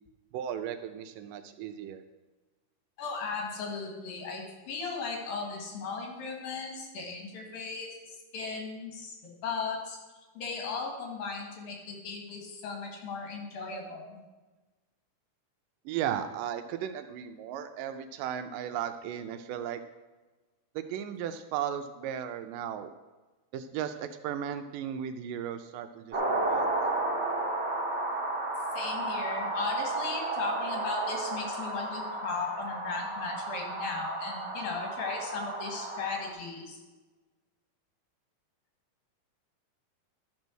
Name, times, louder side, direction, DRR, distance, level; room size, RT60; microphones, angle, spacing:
voice 1, 0.3-2.0 15.9-19.8 20.8-22.9 23.5-26.7, right 9 dB, 80° right, 9 dB, 2.1 m, -36 dB
voice 2, 3.0-7.9 8.3-10.0 10.4-14.2 28.7-36.8, left 4 dB, 80° left, 1 dB, 3.5 m, -36 dB
sound 1, 26.1-36.3, right 2 dB, 60° right, 0.6 m, -33 dB
12.0 x 5.4 x 6.2 m, 1.2 s
omnidirectional pair, 4.1 m